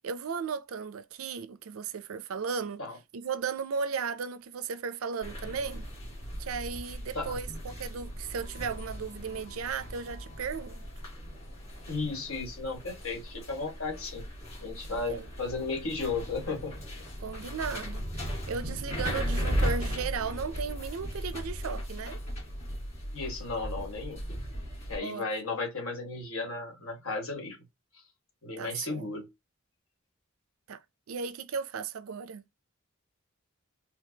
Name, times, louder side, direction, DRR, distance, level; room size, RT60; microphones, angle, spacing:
voice 1, 0.0-2.8 3.1-5.8 6.4-10.8 14.9-15.3 17.2-18.0 18.5-22.2 25.0-25.6 28.6-29.1 30.7-30.8 31.1-32.4, right 5 dB, 80° right, 0.5 m, -35 dB
sound 1, 5.2-25.0, equal, 30° left, 2.1 m, -37 dB
voice 2, 11.9-14.3 14.6-16.8 23.1-24.2 24.9-27.6 28.4-29.3, left 3 dB, 85° left, 1.8 m, -34 dB
4.4 x 2.4 x 2.8 m
head